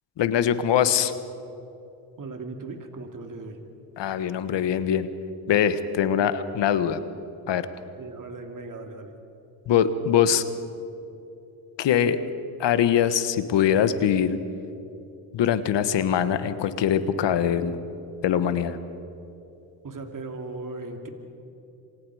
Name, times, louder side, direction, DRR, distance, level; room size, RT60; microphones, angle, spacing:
voice 1, 0.2-1.1 4.0-5.1 5.5-7.0 7.5-7.7 9.7-10.4 11.8-12.2 12.6-14.4 15.3-17.7 18.2-18.8, left 9 dB, 70° left, 12 dB, 1.4 m, -22 dB
voice 2, 2.2-3.6 8.0-9.1 19.8-21.1, right 3 dB, 45° right, 4 dB, 2.9 m, -37 dB
27.5 x 24.5 x 5.0 m, 2.8 s
supercardioid pair, 55°, 45 cm